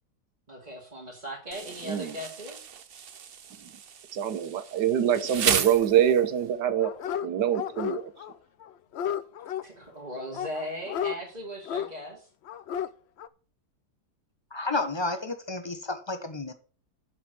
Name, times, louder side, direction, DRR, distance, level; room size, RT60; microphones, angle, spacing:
voice 1, 0.5-2.7 9.6-12.3, equal, 25° right, 2.5 m, -38 dB
Insect, 1.5-6.5, right 8 dB, 50° right, 0.7 m, -33 dB
voice 2, 4.1-6.9 7.2-8.1, right 10 dB, 85° right, 1.6 m, -25 dB
Dog, 6.8-7.3 7.5-8.3 8.6-9.6 10.3-11.2 11.6-11.9 12.5-12.9 13.2-13.3, left 9 dB, 70° left, 0.6 m, -32 dB
voice 3, 14.5-16.5, left 2 dB, 20° left, 1.0 m, -31 dB
7.3 x 6.4 x 7.9 m
omnidirectional pair, 1.8 m